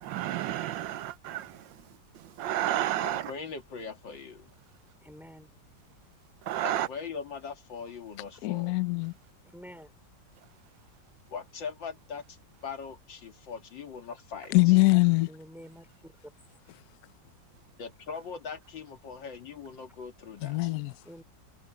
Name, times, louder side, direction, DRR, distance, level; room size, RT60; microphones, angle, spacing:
voice 1, 0.0-1.5 2.4-3.2 6.5-6.9, right 13 dB, 85° right, 1.4 m, -30 dB
voice 2, 3.0-4.5 6.6-8.7 11.3-12.4 12.6-14.6 17.8-20.7, left 5 dB, 85° left, 2.7 m, -41 dB
voice 3, 5.0-5.5 9.5-9.9 15.3-16.1 21.0-21.2, equal, ahead, 4.4 m, -48 dB
voice 4, 8.4-9.1 14.5-15.3 20.4-20.9, left 22 dB, 70° left, 1.0 m, -23 dB
omnidirectional pair, 2.0 m